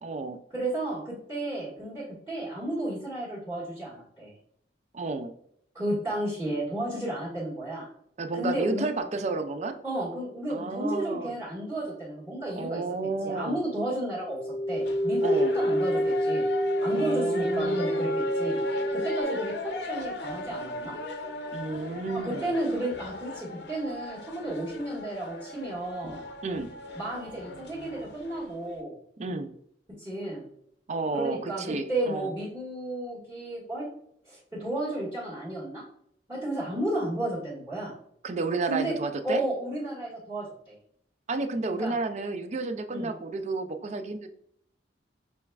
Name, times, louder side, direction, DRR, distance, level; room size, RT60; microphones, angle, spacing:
voice 1, 0.0-0.4 4.9-5.3 8.2-9.8 10.5-11.3 12.6-13.6 15.2-15.6 16.9-18.1 21.5-22.5 26.4-26.7 29.2-29.5 30.9-32.3 38.2-39.4 41.3-44.3, right 3 dB, 40° right, 9 dB, 0.4 m, -31 dB
voice 2, 0.5-4.3 5.7-7.9 8.3-8.9 9.8-12.8 13.2-14.4 14.7-16.4 16.8-18.6 18.9-20.9 22.1-26.2 26.9-28.9 30.0-30.4 31.1-33.8 34.2-35.8 36.3-37.9 38.6-38.9 39.2-40.7 41.8-41.9 42.9-43.1, right 1 dB, 15° right, -8 dB, 1.6 m, -32 dB
sound 1, 14.3-19.2, equal, 20° left, 0.6 m, -27 dB
sound 2, 14.8-28.8, left 2 dB, 70° left, 0.6 m, -37 dB
6.2 x 3.4 x 2.3 m, 0.69 s
head